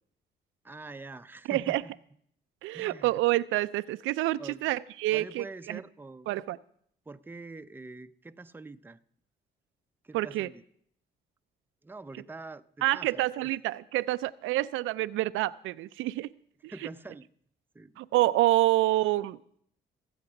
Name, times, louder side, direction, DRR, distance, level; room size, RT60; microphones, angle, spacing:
voice 1, 0.6-1.9 2.7-3.1 4.4-4.6 5.1-6.3 7.1-9.0 10.0-10.5 11.8-13.5 16.7-17.3 17.7-17.9, right 3 dB, 10° right, 0.5 m, -45 dB
voice 2, 1.5-1.8 2.6-5.8 6.3-6.6 10.1-10.5 12.8-16.3 16.6-16.7 18.0-19.4, right 16 dB, 90° right, 0.4 m, -27 dB
16.5 x 8.0 x 5.8 m
cardioid pair, 90°, 20 cm